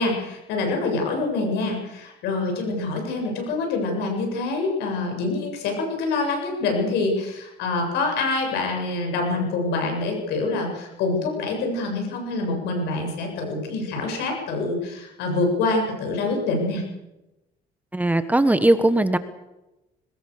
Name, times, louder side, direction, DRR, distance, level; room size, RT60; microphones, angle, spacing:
voice 1, 0.0-16.8, left 3 dB, 85° left, 3 dB, 7.9 m, -26 dB
voice 2, 17.9-19.2, right 1 dB, 10° right, 11 dB, 1.4 m, -19 dB
22.5 x 19.5 x 6.8 m, 0.96 s
cardioid pair, 110°, 17 cm